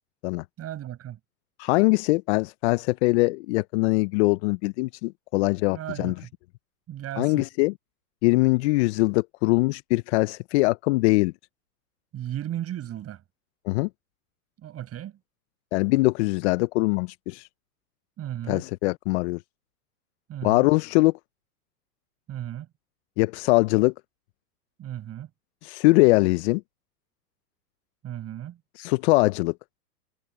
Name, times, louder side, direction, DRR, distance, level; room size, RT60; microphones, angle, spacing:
voice 1, 0.6-1.2 5.7-6.3 6.9-7.5 12.1-13.2 14.6-15.2 18.2-18.6 20.3-20.7 22.3-22.7 24.8-25.3 28.0-28.6, right 12 dB, 30° right, 7.3 m, -35 dB
voice 2, 1.6-6.1 7.2-7.7 8.2-11.3 13.7-13.9 15.7-17.5 18.5-19.4 20.4-21.1 23.2-23.9 25.6-26.6 28.8-29.5, left 23 dB, 45° left, 0.7 m, -22 dB
hypercardioid pair, 115°, 49 cm